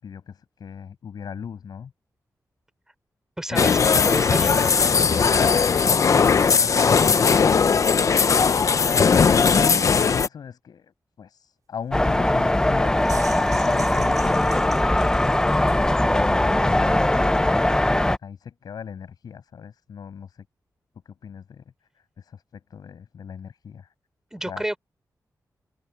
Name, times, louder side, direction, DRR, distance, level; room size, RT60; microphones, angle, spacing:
voice 1, 0.0-1.9 3.5-4.9 6.0-7.5 8.6-15.3 18.2-20.4 21.0-21.6 21.9-23.9 24.5-24.7, left 7 dB, 85° left, 6.4 m, -38 dB
voice 2, 3.4-3.8 4.0-4.5 24.3-24.8, right 1 dB, 10° right, 5.5 m, -29 dB
sound 1, 3.6-10.3, left 5 dB, 50° left, 0.7 m, -18 dB
sound 2, 11.9-18.2, left 1 dB, 10° left, 0.6 m, -20 dB
sound 3, 12.8-15.9, right 5 dB, 60° right, 4.2 m, -41 dB
wide cardioid pair, 115°, 7 cm